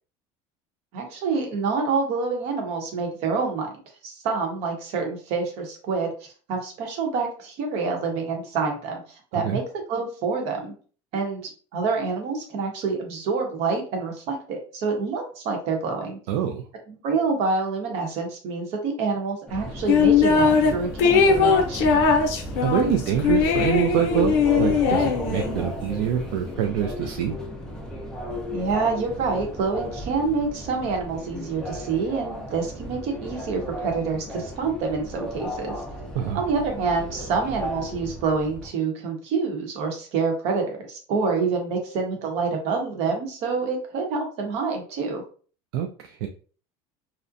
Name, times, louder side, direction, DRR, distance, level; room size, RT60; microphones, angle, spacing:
voice 1, 0.9-3.7 4.0-6.1 6.5-9.0 9.3-10.7 11.1-11.4 11.7-16.2 16.9-22.0 28.5-35.7 36.3-45.2, right 4 dB, 55° right, 2 dB, 0.8 m, -27 dB
voice 2, 16.3-16.6 22.6-27.3 36.1-36.4 45.7-46.3, right 10 dB, 75° right, 3 dB, 0.4 m, -25 dB
Subway metro underground, 19.5-38.7, equal, 5° left, 0.4 m, -34 dB
sound 1, 19.9-20.7 21.0-25.6, left 5 dB, 75° left, 0.6 m, -20 dB
2.5 x 2.1 x 2.5 m, 0.40 s
cardioid pair, 155°, 13 cm